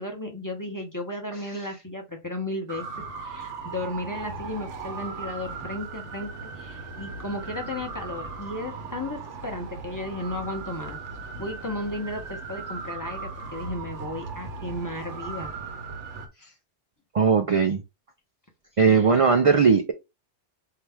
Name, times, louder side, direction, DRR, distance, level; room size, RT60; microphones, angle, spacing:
voice 1, 0.0-2.8 3.2-11.0 11.4-15.5 18.9-19.1, left 1 dB, 20° left, 0.8 m, -34 dB
sound 1, 2.7-16.3, right 4 dB, 80° right, 1.1 m, -37 dB
voice 2, 17.1-17.8 18.8-19.9, right 5 dB, 50° right, 0.4 m, -19 dB
4.5 x 2.9 x 3.4 m
omnidirectional pair, 1.2 m